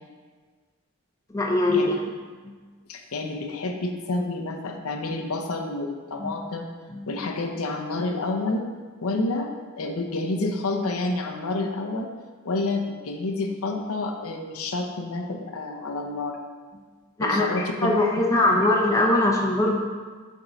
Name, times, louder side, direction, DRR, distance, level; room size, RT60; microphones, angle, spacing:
voice 1, 1.3-1.9 2.4-2.5 6.2-6.3 6.9-7.0 17.2-19.8, left 1 dB, 15° left, -1 dB, 0.6 m, -22 dB
voice 2, 2.9-6.7 7.1-8.6 9.0-9.5 9.8-12.1 12.4-16.4 17.2-17.9 18.5-18.6, left 2 dB, 80° left, 3 dB, 0.7 m, -29 dB
8.2 x 3.6 x 3.9 m, 1.5 s
head